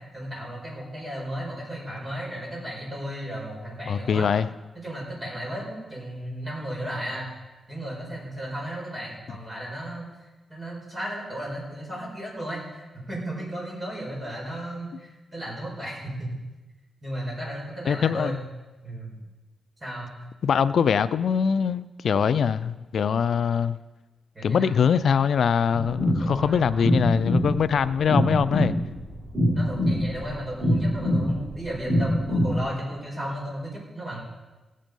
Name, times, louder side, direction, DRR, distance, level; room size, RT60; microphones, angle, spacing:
voice 1, 0.1-4.3 4.8-7.3 7.7-16.3 17.0-18.4 18.8-19.2 19.8-20.1 24.3-24.8 26.2-27.0 29.5-34.2, right 1 dB, 25° right, -3 dB, 5.4 m, -34 dB
voice 2, 3.9-4.5 17.9-18.4 20.4-23.8 24.4-28.7, left 7 dB, 70° left, 14 dB, 0.4 m, -23 dB
sound 1, 25.7-32.6, equal, 75° right, 4.6 m, -24 dB
17.0 x 7.5 x 5.3 m, 1.2 s
cardioid pair, 95°, 0 cm